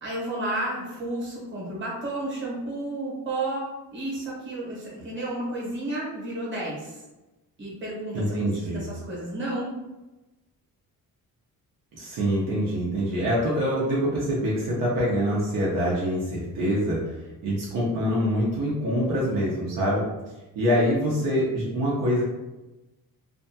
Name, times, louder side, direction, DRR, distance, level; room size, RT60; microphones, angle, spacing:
voice 1, 0.0-7.0 7.6-9.7, right 1 dB, 30° right, -6 dB, 1.1 m, -32 dB
voice 2, 8.1-8.8 12.0-20.0 20.5-22.2, equal, 65° right, -6 dB, 0.7 m, -25 dB
2.6 x 2.3 x 2.7 m, 1.0 s
cardioid pair, 165°, 36 cm